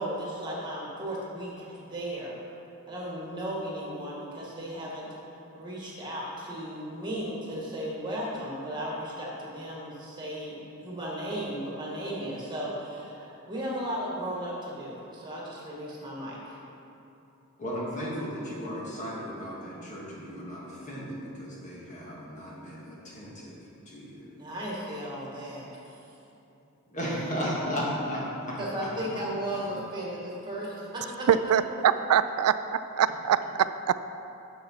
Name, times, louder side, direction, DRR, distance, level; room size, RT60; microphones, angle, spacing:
voice 1, 0.0-2.4 2.9-5.1 5.6-16.6 24.4-26.0 28.6-31.3, equal, 20° right, -4 dB, 2.0 m, -35 dB
voice 2, 17.6-23.6 23.9-24.4 26.9-28.9 29.2-29.3, equal, 35° left, -5 dB, 2.1 m, -35 dB
voice 3, 31.3-32.6 33.0-33.9, right 9 dB, 85° right, 12 dB, 0.3 m, -23 dB
8.7 x 6.9 x 5.7 m, 2.9 s
head